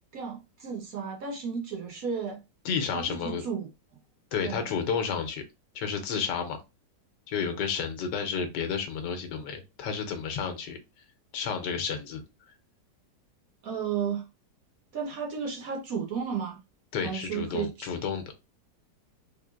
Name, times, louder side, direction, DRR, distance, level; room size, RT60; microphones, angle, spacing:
voice 1, 0.1-2.4 2.9-3.7 4.4-4.8 13.6-14.2 14.9-16.6 17.0-17.9, right 6 dB, 55° right, 1.3 m, -33 dB
voice 2, 2.6-3.4 4.3-5.4 5.7-6.6 7.3-10.8 11.3-12.2 16.9-18.2, left 6 dB, 80° left, 1.3 m, -31 dB
3.7 x 3.3 x 2.4 m
omnidirectional pair, 1.9 m